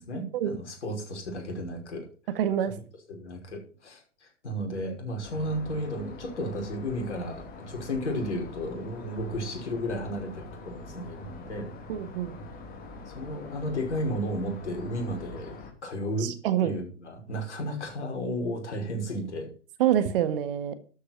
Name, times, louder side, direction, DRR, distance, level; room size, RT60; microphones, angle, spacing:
voice 1, 0.0-2.1 2.6-2.7 3.1-11.7 13.1-16.3 16.6-19.5, equal, 65° left, 3 dB, 5.7 m, -33 dB
voice 2, 2.3-2.7 11.9-12.3 16.2-16.7 19.8-20.7, right 10 dB, 45° right, 11 dB, 1.8 m, -26 dB
sound 1, 5.2-15.7, left 2 dB, 25° left, 3.2 m, -44 dB
12.5 x 8.6 x 6.0 m, 0.39 s
figure-of-eight pair, 105°, 37 cm